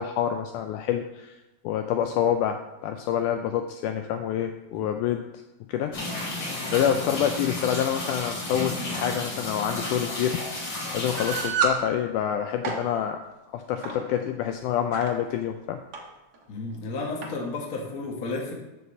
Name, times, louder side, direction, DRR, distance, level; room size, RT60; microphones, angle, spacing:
voice 1, 0.0-1.4 1.6-5.2 5.7-6.0 6.7-10.4 10.9-13.2 13.5-15.8, left 9 dB, 80° left, 6 dB, 1.9 m, -27 dB
sound 1, 5.9-11.5, left 2 dB, 40° left, 3.0 m, -32 dB
sound 2, 11.2-11.8 12.4-12.8 13.8-14.0 14.7-15.1 15.9-16.0 16.3-16.4 17.2-17.4, right 4 dB, 80° right, 0.9 m, -28 dB
voice 2, 16.5-18.5, left 3 dB, 60° left, 0 dB, 0.9 m, -32 dB
8.1 x 4.7 x 7.0 m, 1.1 s
omnidirectional pair, 4.0 m